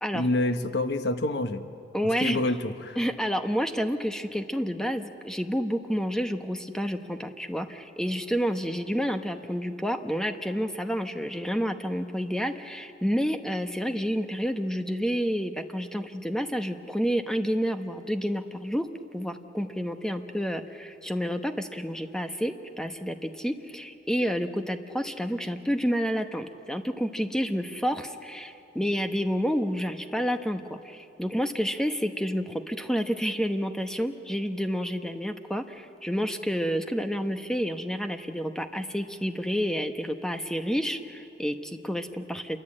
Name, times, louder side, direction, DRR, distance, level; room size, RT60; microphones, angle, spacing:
voice 1, 0.1-1.6 2.2-3.0, left 2 dB, 65° left, 8 dB, 1.2 m, -27 dB
voice 2, 1.9-2.4 3.0-18.9 19.1-42.6, equal, 5° left, 6 dB, 1.0 m, -29 dB
28.0 x 23.0 x 8.8 m, 2.7 s
head